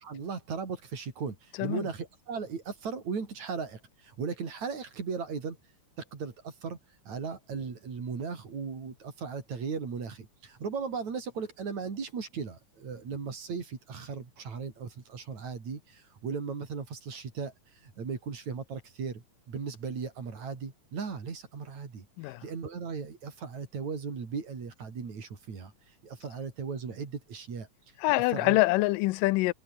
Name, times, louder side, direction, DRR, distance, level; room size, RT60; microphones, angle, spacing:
voice 1, 0.0-5.6 6.0-6.8 7.1-17.5 17.8-25.7 26.0-27.7 28.3-28.6, right 5 dB, 60° right, 5.1 m, -37 dB
voice 2, 28.0-29.5, left 20 dB, 90° left, 2.3 m, -25 dB
omnidirectional pair, 3.8 m